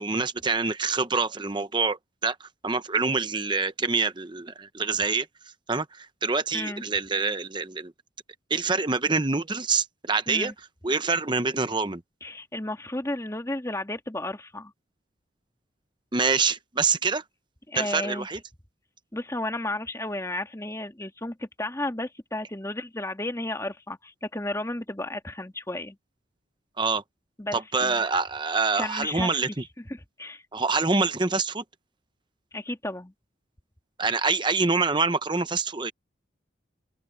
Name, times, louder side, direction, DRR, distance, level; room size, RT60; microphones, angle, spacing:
voice 1, 0.0-5.3 5.7-7.9 8.5-10.5 10.8-12.0 16.1-17.2 17.7-18.4 26.8-27.0 27.5-29.6 30.5-31.6 34.0-35.9, right 4 dB, 25° right, 0.9 m, -26 dB
voice 2, 12.2-14.7 17.7-18.3 19.1-26.0 27.4-28.0 28.7-29.4 29.9-30.4 32.5-33.1, left 1 dB, 15° left, 2.0 m, -33 dB
open air
head